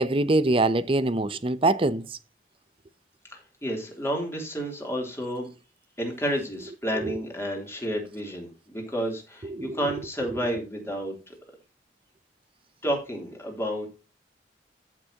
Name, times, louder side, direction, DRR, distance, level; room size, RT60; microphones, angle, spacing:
voice 1, 0.0-2.0 7.0-7.1 9.4-9.8, right 2 dB, 30° right, 0.6 m, -24 dB
voice 2, 3.3-5.5 6.0-11.3 12.8-13.9, equal, 15° left, 3.2 m, -31 dB
14.5 x 6.1 x 2.9 m
head